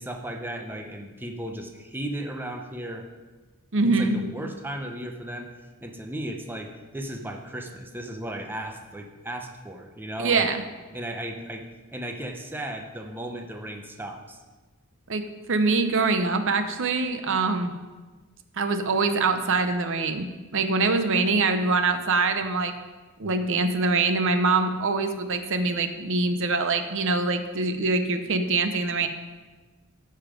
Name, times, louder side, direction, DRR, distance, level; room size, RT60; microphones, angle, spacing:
voice 1, 0.0-3.0 4.0-5.5 5.8-10.5 10.9-14.4, right 1 dB, 10° right, 3 dB, 0.8 m, -35 dB
voice 2, 3.7-4.2 10.2-10.6 15.1-17.7 18.6-20.3 20.5-22.7 23.2-29.1, right 3 dB, 60° right, 8 dB, 0.8 m, -24 dB
14.0 x 5.6 x 5.1 m, 1.3 s
head